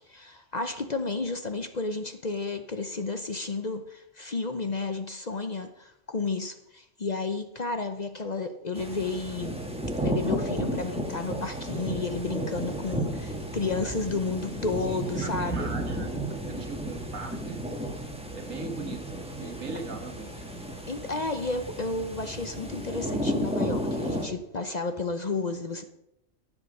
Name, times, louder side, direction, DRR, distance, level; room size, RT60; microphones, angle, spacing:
voice 1, 0.0-9.6 10.0-15.7 20.9-25.8, left 3 dB, 40° left, 8 dB, 0.7 m, -32 dB
sound 1, 8.7-24.3, right 1 dB, 5° right, 1.5 m, -33 dB
voice 2, 14.9-16.1 16.5-17.8 18.3-19.0 19.4-20.4, right 4 dB, 85° right, 4 dB, 2.0 m, -40 dB
14.0 x 7.4 x 5.4 m, 0.82 s
omnidirectional pair, 1.3 m